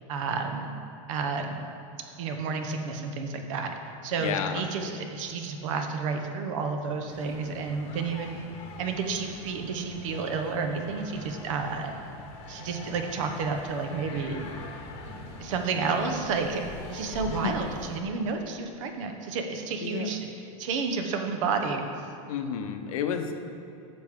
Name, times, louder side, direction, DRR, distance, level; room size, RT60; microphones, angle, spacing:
voice 1, 0.1-0.7 1.1-1.7 2.2-3.7 4.0-8.4 8.8-11.9 12.5-14.5 15.4-20.3 20.6-21.8, right 4 dB, 65° right, 5 dB, 0.9 m, -31 dB
voice 2, 4.2-4.6 17.4-17.5 19.8-20.1 22.3-23.3, left 8 dB, 75° left, 6 dB, 0.8 m, -30 dB
sound 1, 7.1-18.0, left 3 dB, 35° left, 1.0 m, -43 dB
9.7 x 6.1 x 3.7 m, 2.8 s
supercardioid pair, 155°, 18 cm